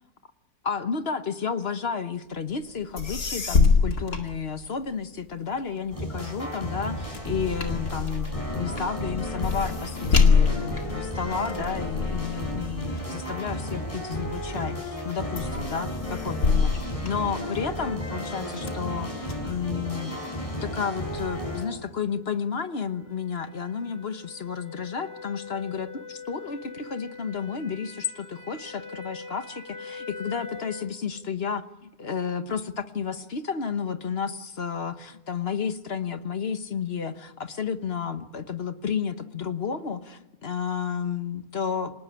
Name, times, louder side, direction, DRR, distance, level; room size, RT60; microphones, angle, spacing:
voice 1, 0.6-20.2 20.6-41.9, left 6 dB, 45° left, 10 dB, 1.3 m, -32 dB
sound 1, 2.7-2.8 3.0-5.1 5.5-14.2 14.7-15.1 15.4-17.8 18.3-19.3, left 5 dB, 85° left, 2.7 m, -26 dB
sound 2, 5.9-21.6, equal, 20° left, 7.7 m, -33 dB
sound 3, 21.1-31.0, left 4 dB, 55° right, 3.9 m, -43 dB
26.5 x 19.0 x 10.0 m, 1.0 s
omnidirectional pair, 1.6 m